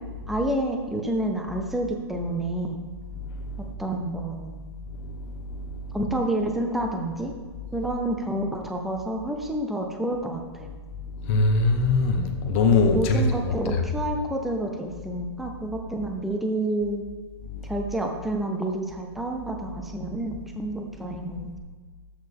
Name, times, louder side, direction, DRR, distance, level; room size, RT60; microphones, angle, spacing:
voice 1, 0.3-2.8 3.8-4.6 5.9-7.3 7.7-10.7 12.9-17.0 17.6-21.6, right 1 dB, ahead, 2 dB, 0.5 m, -29 dB
voice 2, 11.2-13.5 17.5-17.6, left 3 dB, 30° left, 5 dB, 1.0 m, -22 dB
13.0 x 6.4 x 3.5 m, 1.5 s
hypercardioid pair, 160°, 15 cm